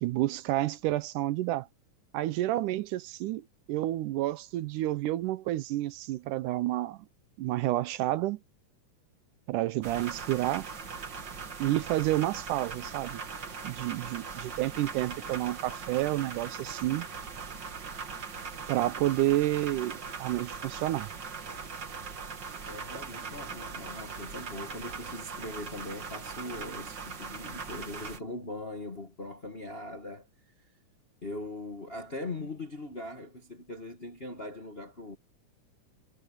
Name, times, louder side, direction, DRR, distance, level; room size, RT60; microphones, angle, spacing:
voice 1, 0.0-1.7 2.1-7.1 7.4-8.4 9.5-10.7 11.6-13.2 13.6-17.1 18.7-21.1, right 15 dB, 80° right, 2.1 m, -30 dB
sound 1, 9.8-28.2, right 5 dB, 40° right, 2.2 m, -40 dB
voice 2, 22.7-30.3 31.2-35.2, left 2 dB, 30° left, 1.1 m, -40 dB
omnidirectional pair, 3.8 m